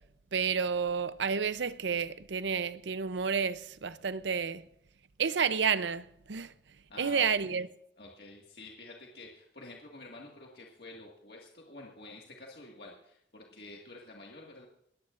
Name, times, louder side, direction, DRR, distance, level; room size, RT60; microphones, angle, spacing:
voice 1, 0.3-4.6 5.2-6.5 7.0-7.7, right 6 dB, 80° right, 0.6 m, -30 dB
voice 2, 6.9-7.6 8.0-14.7, left 2 dB, 60° left, 1.9 m, -49 dB
20.5 x 14.5 x 2.6 m
head